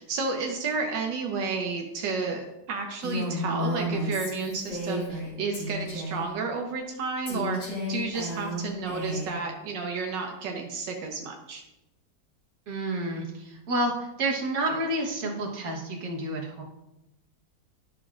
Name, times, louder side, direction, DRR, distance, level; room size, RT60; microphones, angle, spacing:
voice 1, 0.0-11.6, right 4 dB, 80° right, 2 dB, 1.5 m, -31 dB
Female speech woman speaking, 3.0-5.3 5.5-6.3 7.3-9.4, left 1 dB, 80° left, 3.2 m, -32 dB
voice 2, 12.7-16.6, right 1 dB, 55° right, -2 dB, 1.7 m, -29 dB
11.5 x 5.9 x 2.4 m, 0.93 s
omnidirectional pair, 1.9 m